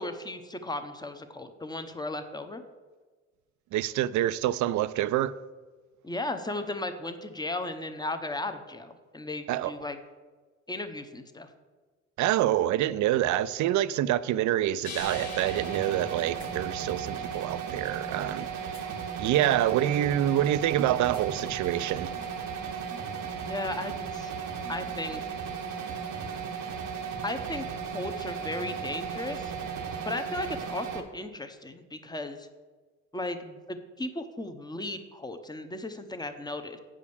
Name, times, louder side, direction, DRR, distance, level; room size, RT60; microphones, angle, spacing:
voice 1, 0.0-2.6 6.0-10.0 10.7-11.5 23.4-24.3 24.7-25.2 27.2-27.7 27.9-29.5 30.0-32.5 33.1-36.8, left 2 dB, 15° left, 0.8 m, -35 dB
voice 2, 3.7-5.4 9.5-9.7 12.2-18.8 19.2-22.1, right 12 dB, 70° right, 0.4 m, -26 dB
sound 1, 14.8-17.6 18.7-18.9 21.1-21.2 22.2-22.3, left 6 dB, 65° left, 1.3 m, -45 dB
sound 2, 15.0-31.0, right 7 dB, 90° right, 1.0 m, -35 dB
8.1 x 5.0 x 7.0 m
cardioid pair, 90°, 30 cm